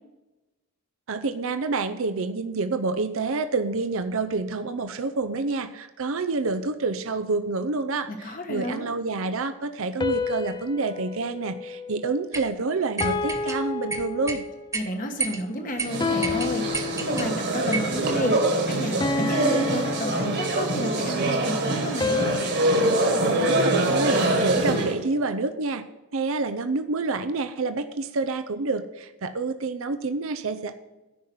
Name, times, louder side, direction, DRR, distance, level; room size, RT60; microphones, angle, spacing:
voice 1, 1.1-14.4 23.4-25.8 26.1-30.7, right 3 dB, 65° right, 9 dB, 0.6 m, -28 dB
voice 2, 8.2-8.9 14.7-16.6 17.0-22.3, equal, 40° left, 5 dB, 1.2 m, -31 dB
sound 1, 10.0-12.5 13.0-14.8 16.0-17.5 19.0-20.9 22.0-24.4, left 4 dB, 20° left, 0.4 m, -31 dB
sound 2, 12.3-12.5 13.0-13.6 13.9-14.4 14.7-14.9 15.2-15.4 15.8-15.9 16.2-17.3 17.7-18.0, right 4 dB, 15° right, 0.6 m, -30 dB
sound 3, 15.8-25.0, right 2 dB, 50° right, 1.9 m, -24 dB
10.5 x 5.7 x 7.8 m, 1.1 s
head